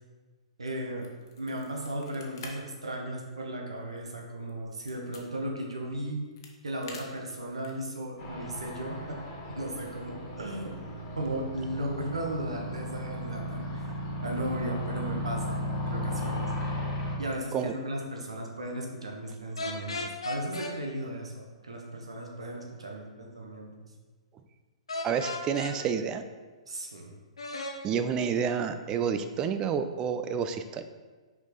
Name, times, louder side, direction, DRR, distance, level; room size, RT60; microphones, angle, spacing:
voice 1, 0.6-1.1 1.4-6.2 6.6-10.7 11.1-13.9 14.2-16.5 17.2-23.9 26.7-27.1, right 1 dB, 70° right, 1 dB, 1.2 m, -36 dB
sound 1, 0.9-2.5 2.8-3.0 3.4-5.2 6.0-7.9, left 5 dB, 45° left, 1.1 m, -48 dB
sound 2, 8.2-17.1, equal, 30° left, 1.6 m, -35 dB
sound 3, 19.6-20.7 24.9-25.7 27.4-27.8, left 2 dB, 70° left, 0.9 m, -35 dB
voice 2, 25.0-26.2 27.8-30.8, right 7 dB, 20° right, 9 dB, 0.4 m, -29 dB
6.1 x 5.2 x 4.1 m, 1.3 s
figure-of-eight pair, 115°, 3 cm